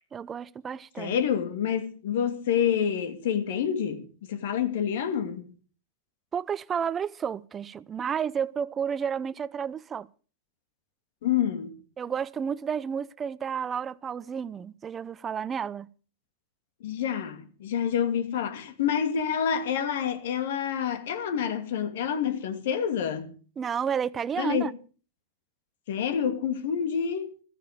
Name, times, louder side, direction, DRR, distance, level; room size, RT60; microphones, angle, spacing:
voice 1, 0.1-1.1 6.3-10.1 12.0-15.9 23.6-24.7, right 7 dB, 25° right, 0.7 m, -31 dB
voice 2, 1.0-5.5 11.2-11.7 16.8-23.3 24.4-24.7 25.9-27.3, left 8 dB, 65° left, 2.4 m, -28 dB
14.5 x 14.5 x 5.1 m
hypercardioid pair, 110°, 0 cm